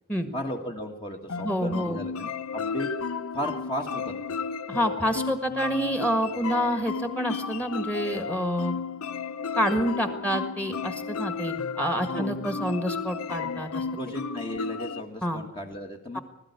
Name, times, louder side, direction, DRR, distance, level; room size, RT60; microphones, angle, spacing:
voice 1, 0.3-2.9 3.3-4.1 12.1-12.4 13.9-16.2, equal, 25° left, 2 dB, 1.6 m, -35 dB
sound 1, 1.3-15.0, left 5 dB, 85° left, 0.7 m, -33 dB
voice 2, 1.4-2.0 4.7-8.7 9.6-13.9 15.2-15.4 16.1-16.2, equal, 5° left, 8 dB, 1.6 m, -28 dB
20.5 x 13.5 x 9.6 m, 0.92 s
head